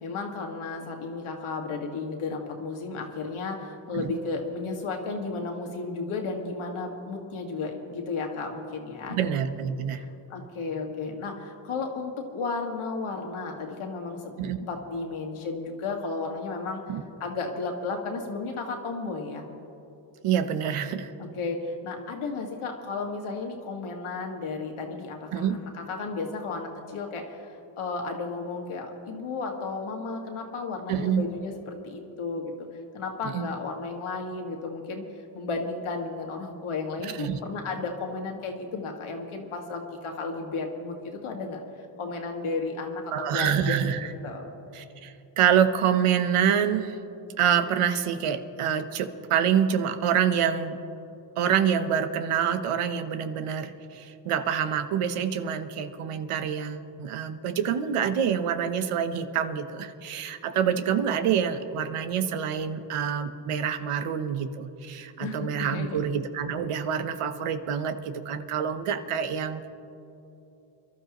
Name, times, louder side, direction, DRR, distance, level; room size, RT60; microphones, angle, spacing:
voice 1, 0.0-9.2 9.9-16.8 17.2-19.4 21.2-32.7 32.9-41.6 42.0-43.8 44.2-44.5 65.2-66.0, left 3 dB, 75° left, 2 dB, 1.9 m, -33 dB
voice 2, 9.1-10.0 14.4-14.6 16.9-17.0 20.2-21.1 25.3-25.6 30.9-31.2 33.3-33.5 37.0-37.4 43.1-44.1 44.7-47.0 47.4-50.8 51.4-69.7, right 8 dB, 85° right, 10 dB, 0.9 m, -26 dB
24.5 x 12.5 x 3.0 m, 2.9 s
cardioid pair, 80°, 50 cm